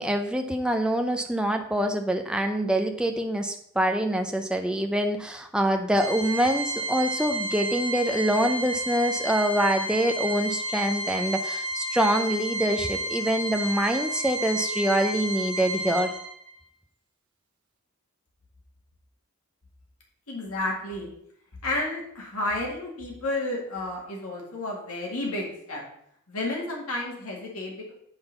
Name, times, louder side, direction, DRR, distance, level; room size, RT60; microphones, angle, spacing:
voice 1, 0.0-16.1, right 1 dB, 5° right, 4 dB, 0.6 m, -25 dB
Organ, 5.9-16.6, right 1 dB, 55° right, 1.1 m, -31 dB
voice 2, 20.3-21.1 21.6-25.8 26.3-27.9, left 2 dB, 75° left, -1 dB, 2.0 m, -31 dB
8.8 x 4.0 x 5.3 m, 0.71 s
head